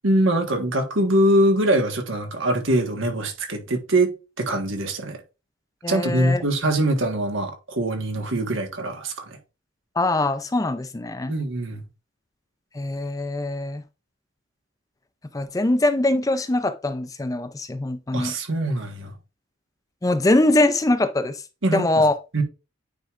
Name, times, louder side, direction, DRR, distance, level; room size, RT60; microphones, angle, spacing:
voice 1, 0.0-5.2 5.9-9.4 11.3-11.8 18.1-19.1 21.6-22.0 22.3-22.4, right 1 dB, 80° right, 1.5 m, -23 dB
voice 2, 5.8-6.4 10.0-11.3 12.7-13.8 15.3-18.3 20.0-21.4 21.7-22.1, left 2 dB, 15° left, 0.4 m, -22 dB
9.1 x 4.6 x 2.5 m
head